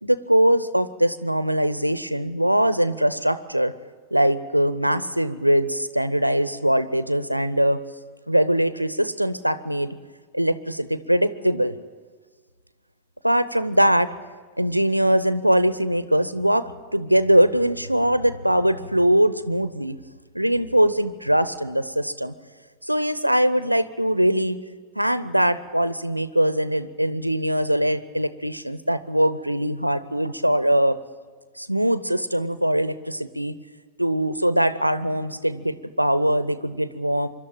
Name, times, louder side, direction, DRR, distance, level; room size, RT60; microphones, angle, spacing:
voice 1, 0.0-3.7 4.1-7.8 8.3-9.9 10.3-11.7 13.2-14.1 14.6-20.0 20.3-22.3 22.8-24.6 25.0-31.0 31.6-33.5 34.0-37.3, equal, 90° right, 14 dB, 0.7 m, -22 dB
26.0 x 12.0 x 8.9 m, 1.5 s
figure-of-eight pair, 90°, 0 cm